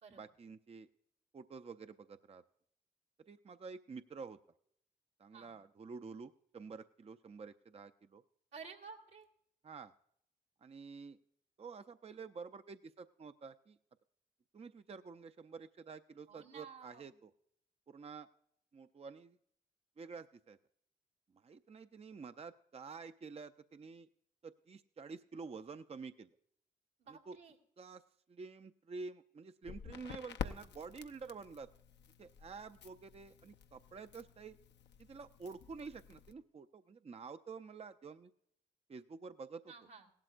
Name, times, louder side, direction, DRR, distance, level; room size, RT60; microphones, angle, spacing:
voice 1, 0.2-0.9 1.3-2.4 3.3-4.4 5.2-8.2 9.6-9.9 10.6-11.2 11.6-13.8 14.5-17.3 17.9-18.3 18.7-19.4 20.0-20.6 21.4-24.1 24.4-26.3 27.1-27.4 27.8-28.0 28.3-31.7 32.2-34.6 35.0-38.3 38.9-39.6, right 4 dB, 35° right, 9 dB, 0.5 m, -49 dB
voice 2, 8.5-9.3 16.3-17.1 27.0-27.6 39.7-40.1, right 5 dB, 80° right, -4 dB, 2.0 m, -53 dB
Crackle, 29.6-36.3, left 7 dB, 70° left, 0.7 m, -49 dB
17.5 x 12.0 x 2.5 m, 0.71 s
supercardioid pair, 45°, 18 cm